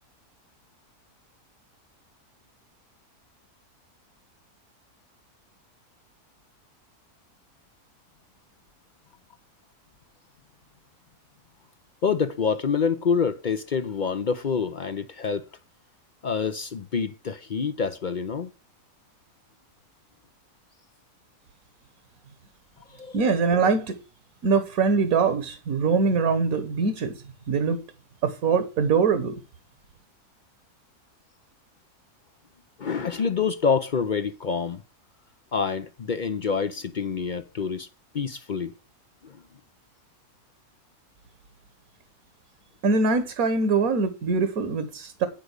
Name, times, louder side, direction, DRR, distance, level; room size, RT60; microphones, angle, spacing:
voice 1, 12.0-15.4 16.2-18.5 23.0-23.2 32.8-34.8 35.5-37.9 38.1-38.7 39.2-39.4, left 6 dB, 55° left, 0.5 m, -27 dB
voice 2, 23.1-24.0 24.4-27.1 27.5-27.8 28.2-29.4 42.8-45.3, right 4 dB, 65° right, 1.6 m, -23 dB
10.5 x 5.0 x 8.0 m
omnidirectional pair, 1.6 m